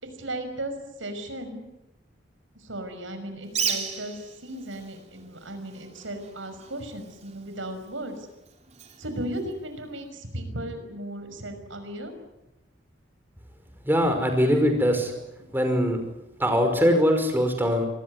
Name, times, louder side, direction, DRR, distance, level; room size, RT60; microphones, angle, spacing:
voice 1, 0.0-1.7 2.6-8.2 9.0-12.1, right 1 dB, 85° right, 8 dB, 5.8 m, -36 dB
Bird, 3.4-10.1, right 6 dB, 35° right, 3.0 m, -37 dB
voice 2, 13.9-15.1 15.5-16.0 16.4-17.9, equal, 10° right, 5 dB, 5.4 m, -22 dB
25.5 x 20.0 x 9.8 m, 0.94 s
head